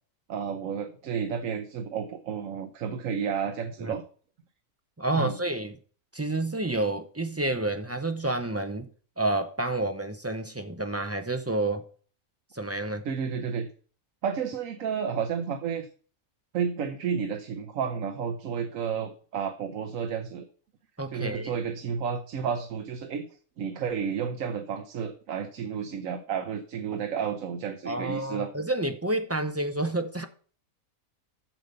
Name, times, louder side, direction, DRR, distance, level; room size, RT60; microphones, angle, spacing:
voice 1, 0.3-4.0 5.1-5.4 13.0-13.7 14.2-15.9 16.5-20.5 21.1-23.3 23.6-28.5, right 7 dB, 75° right, 1.2 m, -31 dB
voice 2, 5.0-5.8 6.1-8.8 9.2-11.9 12.5-13.1 21.0-21.5 27.8-30.2, right 2 dB, 20° right, 0.4 m, -29 dB
7.7 x 6.8 x 5.3 m
omnidirectional pair, 1.4 m